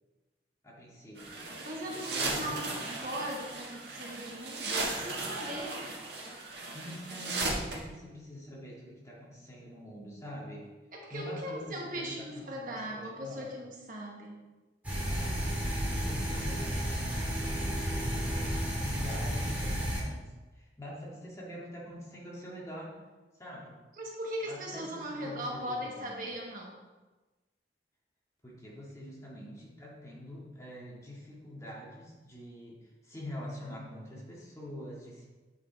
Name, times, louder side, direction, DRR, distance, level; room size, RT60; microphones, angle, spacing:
voice 1, 0.6-1.5 1.8-2.6 6.7-10.7 11.1-13.5 15.1-23.0 23.4-23.8 24.4-26.2 28.4-35.3, equal, 15° left, -5 dB, 1.9 m, -45 dB
sound 1, 1.2-7.8, right 3 dB, 70° right, 1.5 m, -36 dB
voice 2, 1.6-2.7 3.0-5.8 10.9-14.4 24.0-26.7, equal, 50° right, -1 dB, 1.3 m, -39 dB
sound 2, 14.8-20.0, equal, 10° right, 1.9 m, -32 dB
8.7 x 5.4 x 3.9 m, 1.2 s
head